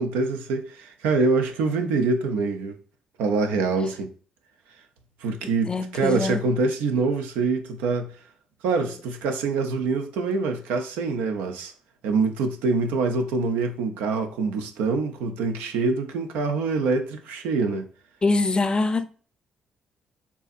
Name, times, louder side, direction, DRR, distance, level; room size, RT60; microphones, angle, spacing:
voice 1, 0.0-2.8 3.2-4.1 5.2-8.1 8.6-11.7 12.0-17.9, right 4 dB, 75° right, 0.5 m, -25 dB
voice 2, 5.7-6.4 18.2-19.1, left 3 dB, 30° left, 0.5 m, -23 dB
4.5 x 2.7 x 2.5 m
hypercardioid pair, 45°, 3 cm